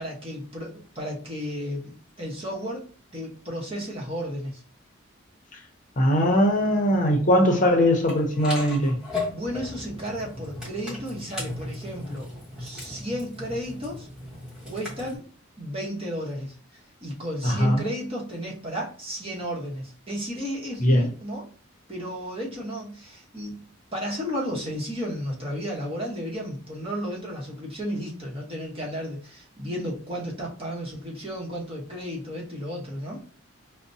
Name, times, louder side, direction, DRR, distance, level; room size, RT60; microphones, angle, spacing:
voice 1, 0.0-4.6 9.3-12.3 12.6-14.1 14.7-15.3 15.6-21.5 21.9-33.2, equal, 30° right, 1.0 m, -33 dB
voice 2, 6.0-9.0 17.4-17.8 20.8-21.0, equal, 40° left, 0.7 m, -20 dB
sound 1, 8.1-15.2, left 2 dB, 5° right, 1.2 m, -36 dB
4.9 x 2.1 x 2.7 m
head